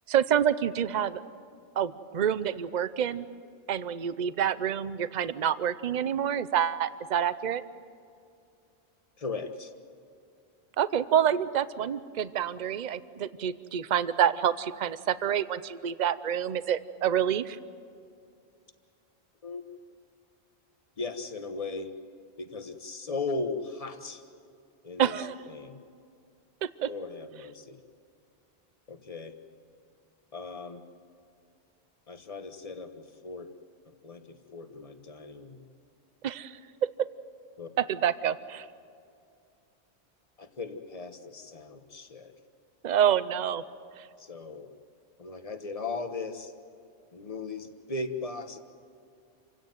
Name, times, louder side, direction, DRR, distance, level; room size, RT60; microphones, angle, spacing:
voice 1, 0.1-1.2 1.8-3.3 3.7-7.6 10.8-17.6 25.0-25.3 26.6-26.9 36.2-36.5 36.8-37.1 37.9-38.7 42.8-43.6 44.0-44.1, right 9 dB, 50° right, 15 dB, 0.8 m, -27 dB
voice 2, 9.2-9.7 19.4-19.8 21.0-21.9 22.4-24.2 24.8-25.8 26.9-27.8 28.9-29.3 30.3-30.8 32.1-33.5 33.9-35.7 37.6-37.7 40.4-42.3 44.2-44.7 45.2-46.5 47.1-48.6, left 3 dB, 35° left, 8 dB, 1.4 m, -37 dB
27.5 x 17.0 x 9.3 m, 2.4 s
omnidirectional pair, 1.1 m